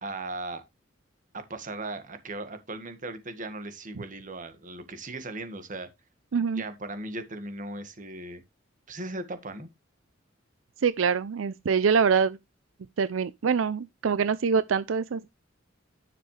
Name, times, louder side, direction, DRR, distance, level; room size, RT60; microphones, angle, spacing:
voice 1, 0.0-0.6 1.3-5.9 6.5-8.4 8.9-9.7, right 2 dB, 40° right, 1.7 m, -37 dB
voice 2, 6.3-6.6 10.8-12.4 13.0-15.3, right 6 dB, 90° right, 0.5 m, -25 dB
10.0 x 6.8 x 3.3 m
head